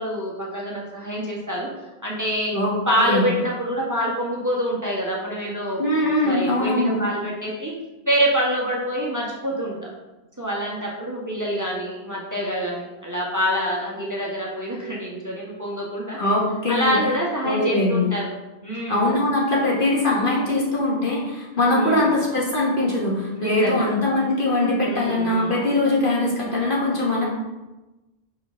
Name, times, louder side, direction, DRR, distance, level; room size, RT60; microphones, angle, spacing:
voice 1, 0.0-1.7 2.0-2.5 2.8-5.8 6.2-7.7 8.0-9.9 10.4-16.2 16.7-18.3 18.6-19.1 21.7-22.1 23.3-23.9 24.8-25.6, equal, 15° right, -4 dB, 1.4 m, -26 dB
voice 2, 2.5-3.2 5.8-7.0 16.2-17.0 17.4-18.1 18.9-27.3, left 2 dB, 50° left, -4 dB, 1.8 m, -22 dB
5.8 x 5.1 x 5.7 m, 1.1 s
omnidirectional pair, 1.1 m